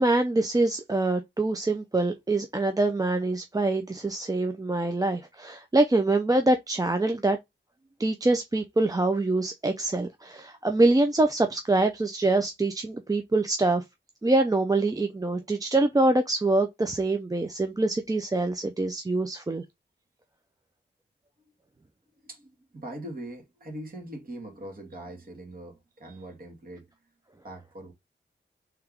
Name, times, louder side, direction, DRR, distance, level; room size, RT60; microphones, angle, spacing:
voice 1, 0.0-7.4 8.0-13.8 14.2-19.6, right 2 dB, 20° right, 0.4 m, -25 dB
voice 2, 22.2-26.9 27.4-27.9, right 1 dB, 50° right, 1.9 m, -41 dB
3.4 x 3.4 x 3.5 m
wide cardioid pair, 105°, 19 cm